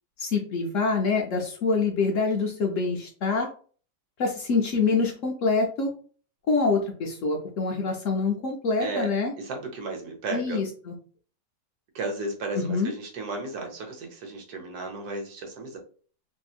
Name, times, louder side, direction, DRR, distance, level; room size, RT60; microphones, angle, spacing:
voice 1, 0.2-3.5 4.2-5.9 6.5-9.3 10.3-10.9 12.5-12.9, left 4 dB, 70° left, 0 dB, 0.7 m, -25 dB
voice 2, 8.8-10.6 11.9-15.8, right 3 dB, 65° right, 2 dB, 1.2 m, -34 dB
2.9 x 2.7 x 2.4 m, 0.42 s
omnidirectional pair, 1.8 m